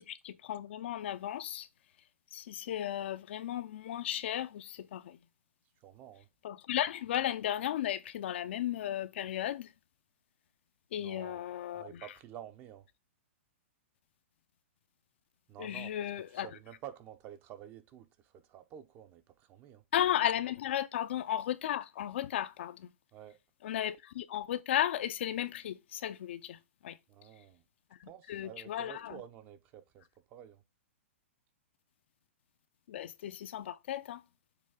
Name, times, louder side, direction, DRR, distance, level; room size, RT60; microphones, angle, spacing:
voice 1, 0.0-1.7 2.3-5.2 6.4-9.7 10.9-12.1 15.6-16.5 19.9-22.9 23.6-27.0 28.0-29.2 32.9-34.2, left 11 dB, 55° left, 0.5 m, -35 dB
voice 2, 5.8-6.3 11.0-11.4 11.7-12.9 15.5-15.9 16.3-19.8 23.1-23.4 27.1-27.6 28.0-30.6, right 10 dB, 25° right, 0.7 m, -50 dB
6.7 x 3.1 x 4.9 m
hypercardioid pair, 155°, 7 cm